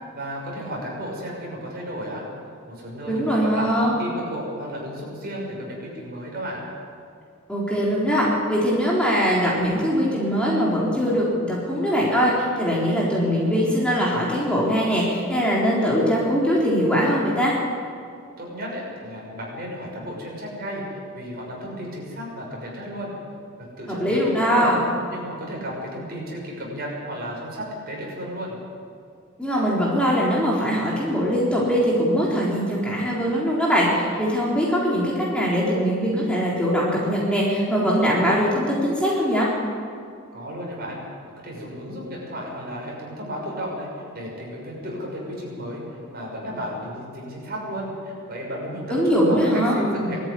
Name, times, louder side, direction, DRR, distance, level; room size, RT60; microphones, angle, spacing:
voice 1, 0.1-2.3 2.7-6.7 18.4-23.1 23.6-24.7 25.1-28.6 40.3-50.3, equal, 45° right, -2 dB, 6.3 m, -33 dB
voice 2, 3.1-3.9 7.5-17.5 23.9-24.8 29.4-39.5 48.9-50.2, equal, 5° left, -5 dB, 3.7 m, -21 dB
20.0 x 13.5 x 9.9 m, 2.3 s
head